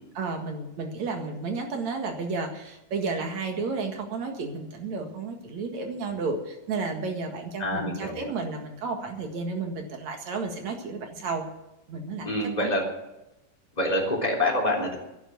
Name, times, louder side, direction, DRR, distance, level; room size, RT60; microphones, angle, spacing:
voice 1, 0.1-11.5 11.9-12.3 12.6-12.7, right 4 dB, 55° right, 4 dB, 2.9 m, -32 dB
voice 2, 7.6-8.3 12.2-12.8 13.7-15.0, left 1 dB, 10° left, -2 dB, 3.3 m, -26 dB
11.0 x 11.0 x 9.5 m, 0.90 s
omnidirectional pair, 4.0 m